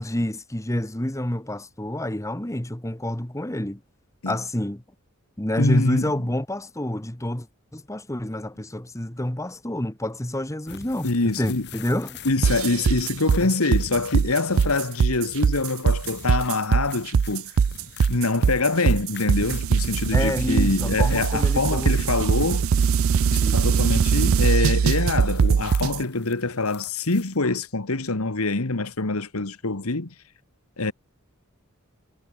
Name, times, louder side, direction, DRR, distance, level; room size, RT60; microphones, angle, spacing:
voice 1, 0.0-3.8 4.2-4.8 5.4-7.5 7.7-12.2 13.4-13.5 20.1-21.9 23.3-23.8, left 1 dB, 15° left, 1.5 m, -28 dB
voice 2, 5.6-6.1 11.0-11.7 12.2-17.5 18.1-22.7 23.3-30.1 30.8-30.9, left 3 dB, 80° left, 1.7 m, -25 dB
sound 1, 10.7-27.4, left 8 dB, 50° left, 2.0 m, -45 dB
sound 2, 12.4-26.0, right 6 dB, 65° right, 0.4 m, -21 dB
head